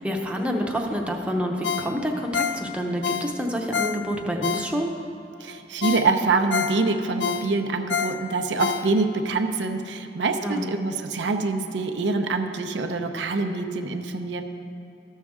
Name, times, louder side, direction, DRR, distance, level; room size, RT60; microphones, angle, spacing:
voice 1, 0.0-4.9 10.4-10.7, equal, 5° right, 1 dB, 0.7 m, -28 dB
Ringtone, 1.6-5.1 5.5-5.6 5.8-9.3 9.7-9.8, left 7 dB, 80° left, 0.4 m, -29 dB
voice 2, 5.4-14.4, right 3 dB, 75° right, 5 dB, 0.6 m, -25 dB
13.5 x 6.4 x 3.6 m, 2.6 s
head